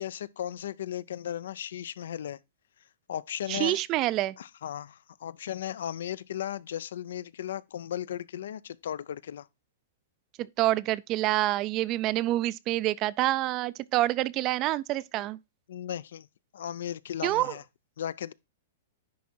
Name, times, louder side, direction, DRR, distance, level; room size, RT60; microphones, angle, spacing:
voice 1, 0.0-2.4 3.1-3.8 4.4-9.5 15.7-16.3 16.5-17.6 18.0-18.3, left 10 dB, 75° left, 0.4 m, -36 dB
voice 2, 3.5-4.3 10.4-15.4 17.2-17.5, right 16 dB, 30° right, 0.3 m, -27 dB
10.0 x 3.6 x 4.3 m
hypercardioid pair, 150°, 0 cm